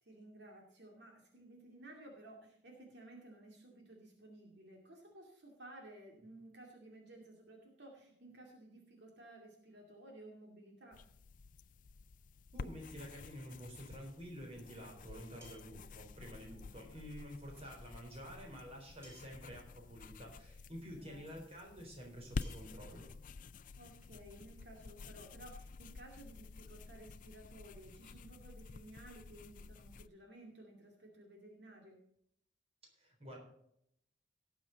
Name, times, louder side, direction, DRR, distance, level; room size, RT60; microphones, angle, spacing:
voice 1, 0.0-11.0 16.4-16.8 21.0-21.4 23.8-32.0, right 1 dB, 70° right, 0 dB, 2.4 m, -56 dB
sound 1, 10.9-30.1, left 4 dB, 50° left, 0.4 m, -50 dB
voice 2, 12.5-23.1 33.0-33.4, equal, 35° right, 1 dB, 3.9 m, -50 dB
sound 2, 15.4-15.9 17.4-17.5 19.0-19.5 20.7-20.8 22.4-22.5, equal, 15° right, 4.5 m, -58 dB
18.0 x 6.9 x 4.0 m, 0.73 s
head